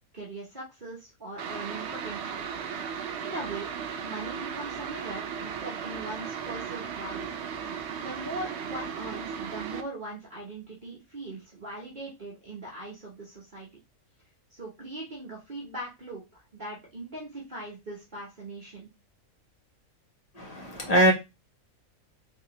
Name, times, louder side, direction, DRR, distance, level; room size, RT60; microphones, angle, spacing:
voice 1, 0.1-2.4 2.9-3.7 4.0-7.3 7.7-13.7 14.5-18.9, right 2 dB, 35° right, -4 dB, 1.0 m, -40 dB
sound 1, 1.4-9.8, right 7 dB, 65° right, 0.7 m, -36 dB
voice 2, 20.3-21.1, equal, 30° left, 0 dB, 1.0 m, -22 dB
3.5 x 2.9 x 2.9 m, 0.24 s
omnidirectional pair, 1.5 m